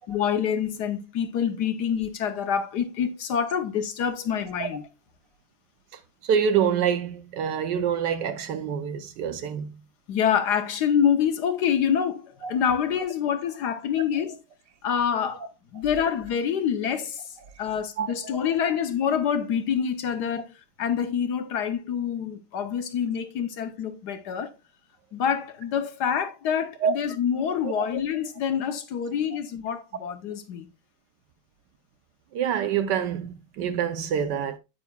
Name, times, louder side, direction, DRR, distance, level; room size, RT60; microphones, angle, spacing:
voice 1, 0.1-4.8 10.1-14.4 14.8-17.3 17.6-20.5 20.8-24.5 25.1-30.7, left 8 dB, 65° left, 1.2 m, -26 dB
voice 2, 5.9-9.7 12.4-12.6 18.0-18.3 26.8-26.9 27.6-27.9 32.3-34.6, right 8 dB, 70° right, 1.1 m, -26 dB
9.0 x 8.9 x 2.2 m
omnidirectional pair, 2.2 m